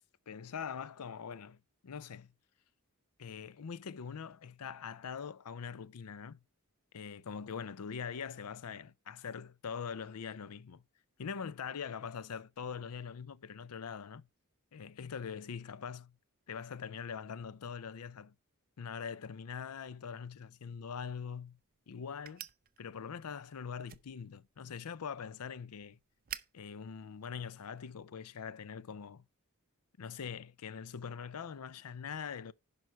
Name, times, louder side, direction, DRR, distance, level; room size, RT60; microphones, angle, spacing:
voice 1, 0.3-2.3 3.2-6.4 6.9-10.8 11.2-14.3 14.7-16.1 16.5-18.3 18.8-21.6 21.9-22.5 22.8-26.0 26.5-29.2 30.0-32.5, left 6 dB, 85° left, 0.5 m, -43 dB
sound 1, 20.9-28.0, right 11 dB, 40° right, 0.6 m, -53 dB
11.0 x 5.5 x 4.5 m
head